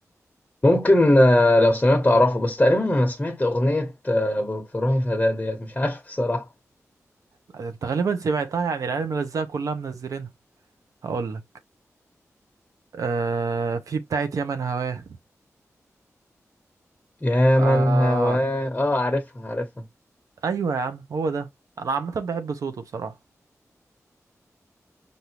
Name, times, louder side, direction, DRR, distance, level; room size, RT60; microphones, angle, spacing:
voice 1, 0.6-6.5 17.2-19.7, left 1 dB, 25° left, 1.0 m, -20 dB
voice 2, 7.5-10.3 11.0-11.4 12.9-15.0 17.6-18.4 20.4-21.5 21.8-23.1, right 5 dB, 85° right, 0.8 m, -27 dB
5.3 x 2.7 x 3.0 m
wide cardioid pair, 75°, 6 cm